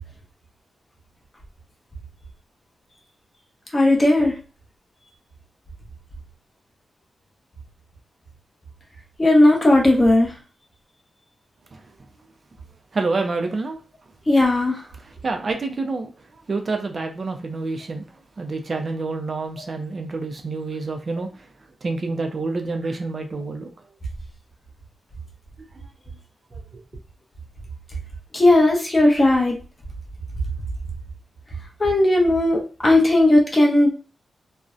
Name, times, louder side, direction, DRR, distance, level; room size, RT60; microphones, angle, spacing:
voice 1, 3.7-4.3 9.2-10.3 14.3-14.8 28.3-29.5 31.8-33.9, left 1 dB, 20° left, 0.6 m, -16 dB
voice 2, 12.9-13.8 15.2-16.1 16.5-18.1 18.4-21.3 21.8-23.7 26.5-26.6, right 3 dB, 40° right, 0.3 m, -27 dB
2.5 x 2.0 x 2.4 m
wide cardioid pair, 145°, 0 cm